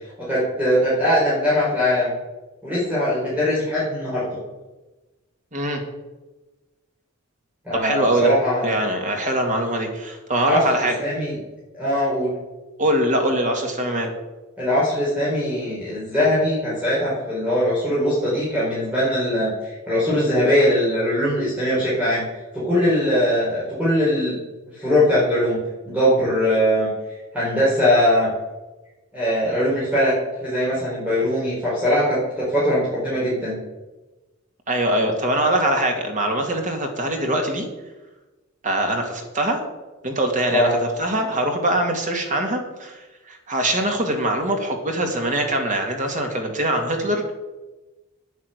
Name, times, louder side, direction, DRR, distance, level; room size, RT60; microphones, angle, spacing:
voice 1, 0.3-2.1 2.6-4.2 7.6-8.8 10.4-10.6 11.0-11.4 11.8-12.3 14.6-22.2 22.5-24.4 24.7-25.6 25.9-26.9 27.3-28.3 29.1-30.1 30.4-33.6 40.5-40.7, left 1 dB, 5° right, -9 dB, 4.7 m, -21 dB
voice 2, 5.5-5.8 7.8-8.3 8.6-11.0 12.8-14.1 34.7-37.7 38.6-39.6 40.0-40.7 41.0-47.3, right 1 dB, 40° right, 3 dB, 2.3 m, -23 dB
9.8 x 9.6 x 8.1 m, 1.1 s
head